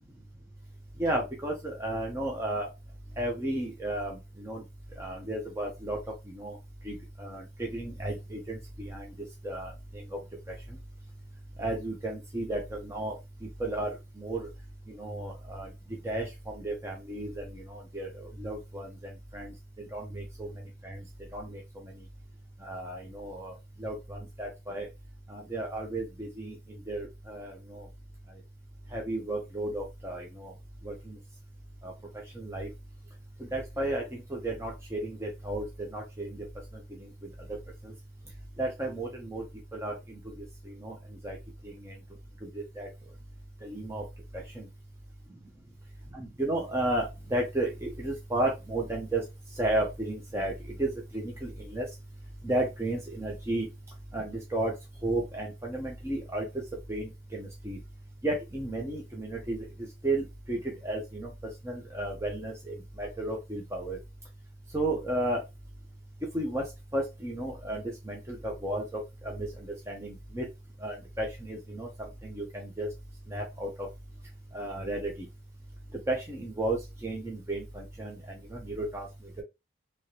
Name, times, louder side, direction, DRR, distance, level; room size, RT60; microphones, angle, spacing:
voice 1, 1.0-2.7 3.2-4.6 5.0-6.0 6.3-6.6 6.8-9.1 9.4-9.7 10.1-10.2 11.6-13.1 13.6-14.5 14.9-15.7 16.0-18.1 18.4-18.9 19.3-20.5 20.8-21.0 21.3-21.6 22.6-23.5 23.8-24.9 25.3-27.9 28.9-30.5 30.8-31.2 31.8-31.9 32.4-32.7 33.5-36.4 38.6-39.4 39.7-40.3 40.7-40.9 41.2-41.4 41.6-41.9 42.5-42.9 43.6-44.0 44.3-44.7 46.1-49.2 49.6-50.5 50.8-51.9 52.4-53.7 54.1-54.7 55.0-56.5 56.9-57.8 58.2-59.7 60.0-61.3 61.6-64.0 64.7-65.4 66.3-66.6 66.9-69.5 69.9-70.4 70.8-72.9 73.3-73.9 74.5-75.1 76.1-78.2 78.5-79.1, right 1 dB, 15° right, 0 dB, 0.7 m, -33 dB
3.2 x 2.9 x 2.8 m, 0.23 s
head